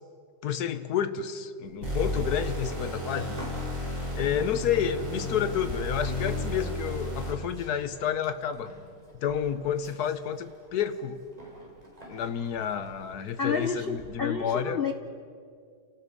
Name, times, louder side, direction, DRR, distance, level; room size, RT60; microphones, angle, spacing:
voice 1, 0.4-3.4 4.1-8.7 9.2-11.2 12.1-14.8, left 8 dB, 60° left, 11 dB, 1.3 m, -30 dB
Livestock farm animals working animals, 1.6-14.1, equal, 20° right, 4.6 m, -49 dB
sound 1, 1.8-7.6, left 1 dB, 45° right, 6.0 m, -33 dB
voice 2, 13.4-14.9, left 5 dB, 80° left, 6 dB, 0.5 m, -29 dB
29.0 x 18.5 x 5.4 m, 2.2 s
omnidirectional pair, 2.2 m